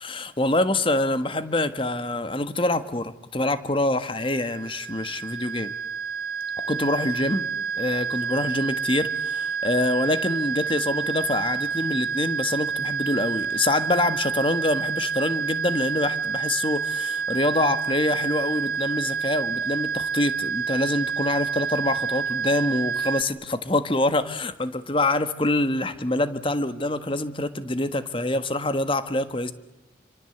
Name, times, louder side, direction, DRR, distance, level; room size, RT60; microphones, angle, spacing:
voice 1, 0.0-5.7 6.7-7.4 7.8-29.5, left 2 dB, 30° left, 11 dB, 1.5 m, -25 dB
sound 1, 4.1-23.2, right 6 dB, 50° right, 1.0 m, -28 dB
28.5 x 25.0 x 8.0 m, 0.95 s
head